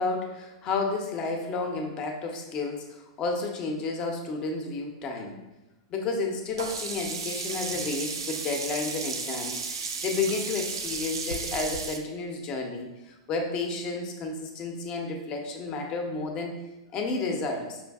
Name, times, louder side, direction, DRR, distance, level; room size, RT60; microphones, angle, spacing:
voice 1, 0.0-5.4 5.9-16.6 16.9-17.8, left 3 dB, 35° left, 3 dB, 0.7 m, -31 dB
Sink (filling or washing), 6.6-12.0, right 4 dB, 85° right, 0.4 m, -34 dB
5.7 x 2.6 x 2.3 m, 1.0 s
hypercardioid pair, 110°, 2 cm